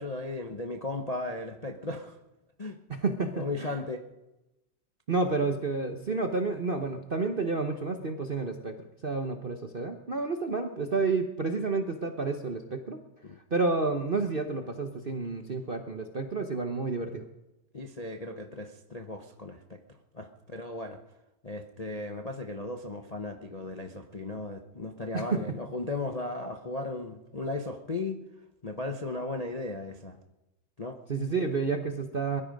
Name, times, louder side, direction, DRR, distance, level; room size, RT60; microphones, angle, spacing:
voice 1, 0.0-2.2 2.6-2.8 3.3-4.1 13.2-13.4 17.7-19.8 20.1-21.0 21.4-28.2 28.6-30.2 30.8-31.0, left 2 dB, 35° left, 4 dB, 0.6 m, -36 dB
voice 2, 2.9-3.7 5.1-8.7 9.0-13.0 13.5-17.3 25.1-25.6 31.1-32.4, right 3 dB, 40° right, 6 dB, 0.8 m, -30 dB
21.5 x 12.5 x 5.3 m, 0.98 s
omnidirectional pair, 2.2 m